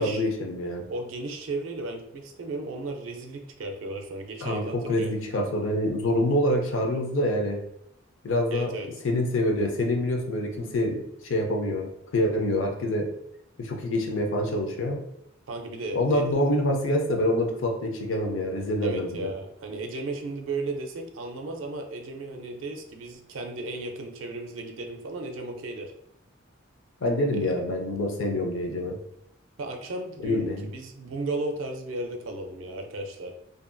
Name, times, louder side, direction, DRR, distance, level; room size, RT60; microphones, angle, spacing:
voice 1, 0.0-0.9 4.4-7.6 8.2-8.7 9.0-13.1 13.6-15.0 15.9-19.3 27.0-29.0 30.2-30.7, left 1 dB, 75° left, 3 dB, 0.5 m, -26 dB
voice 2, 0.9-5.1 8.5-8.9 15.5-16.3 18.8-25.9 27.3-27.5 29.6-33.3, right 2 dB, 75° right, 3 dB, 0.4 m, -35 dB
2.6 x 2.5 x 2.2 m, 0.75 s
head